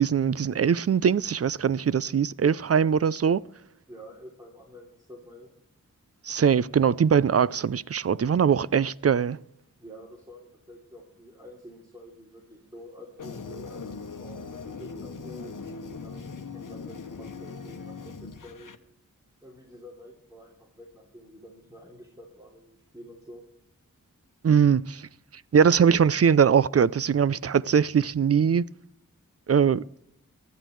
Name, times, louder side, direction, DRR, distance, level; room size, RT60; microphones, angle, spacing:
voice 1, 0.0-3.4 6.2-9.4 24.4-25.1 25.5-28.6 29.5-29.8, right 7 dB, 50° right, 0.4 m, -21 dB
voice 2, 3.9-5.5 9.8-15.5 16.0-18.7 19.4-23.4, equal, 10° right, 3.0 m, -48 dB
sound 1, 13.2-18.7, left 4 dB, 70° left, 1.1 m, -40 dB
19.0 x 13.0 x 3.2 m
wide cardioid pair, 55°, 33 cm